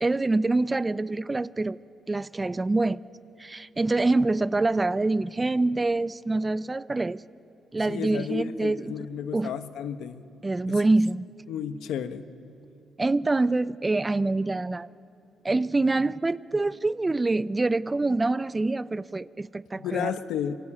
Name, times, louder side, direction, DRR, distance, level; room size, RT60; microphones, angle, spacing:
voice 1, 0.0-1.8 2.1-3.0 3.4-7.2 7.7-8.9 9.3-9.5 10.4-11.3 13.0-14.9 15.4-20.1, right 2 dB, 20° right, 0.5 m, -25 dB
voice 2, 7.9-10.2 10.7-10.8 11.5-12.3 19.7-20.6, left 8 dB, 80° left, 1.1 m, -32 dB
26.5 x 23.0 x 8.7 m
cardioid pair, 90°, 0 cm